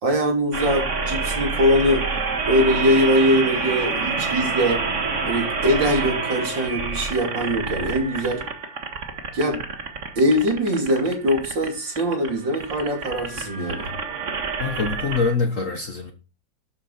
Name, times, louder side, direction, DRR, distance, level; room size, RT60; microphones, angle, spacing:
voice 1, 0.0-2.1 2.5-4.8 5.3-8.4 9.3-9.6 10.2-13.9, equal, 80° right, 4.0 m, -22 dB
sound 1, 0.5-15.3, right 4 dB, 40° right, 1.9 m, -28 dB
voice 2, 14.6-16.1, left 4 dB, 45° left, 1.6 m, -24 dB
11.5 x 8.8 x 4.3 m
omnidirectional pair, 2.0 m